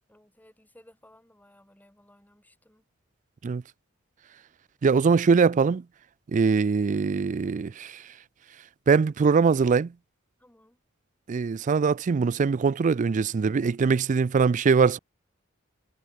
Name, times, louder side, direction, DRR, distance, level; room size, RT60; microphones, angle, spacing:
voice 1, 0.1-2.8 10.4-10.8, left 1 dB, 10° left, 3.6 m, -58 dB
voice 2, 4.8-5.8 6.3-8.0 8.9-9.9 11.3-15.0, right 5 dB, 40° right, 0.3 m, -22 dB
head